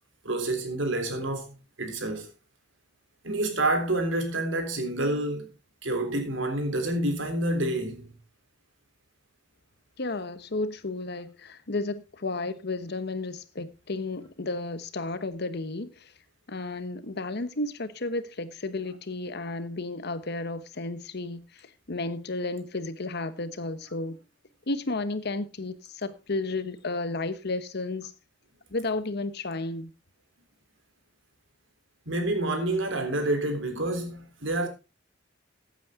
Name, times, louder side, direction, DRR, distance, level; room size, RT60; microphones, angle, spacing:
voice 1, 0.2-2.3 3.2-5.5 5.8-8.1 32.0-34.7, right 1 dB, 85° right, 3.4 m, -28 dB
voice 2, 10.0-16.1 16.5-24.2 24.7-28.1 28.7-29.9, left 2 dB, 60° left, 1.1 m, -33 dB
15.0 x 8.6 x 3.6 m
head